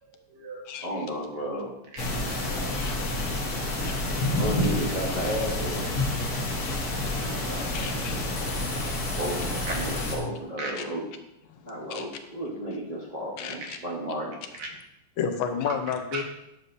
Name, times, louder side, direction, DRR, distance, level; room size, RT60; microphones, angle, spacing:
voice 1, 0.0-0.7 1.9-2.1 2.4-3.1 3.4-3.7 4.0-4.1 4.9-5.0 7.3-7.9 8.7-9.8 10.6-10.7 11.7-11.9 14.6-14.7 15.3-15.7 16.1-16.2, right 3 dB, 85° right, 0 dB, 2.3 m, -40 dB
voice 2, 0.8-1.7 3.8-6.0 9.1-11.0 11.6-14.4, right 1 dB, 30° right, -5 dB, 0.8 m, -33 dB
sound 1, 2.0-10.2, left 2 dB, 50° left, 1.6 m, -29 dB
voice 3, 7.7-8.6 11.5-12.0 13.4-13.8 15.2-16.2, left 7 dB, 75° left, 7 dB, 1.5 m, -32 dB
9.7 x 6.6 x 2.6 m, 0.87 s
omnidirectional pair, 2.4 m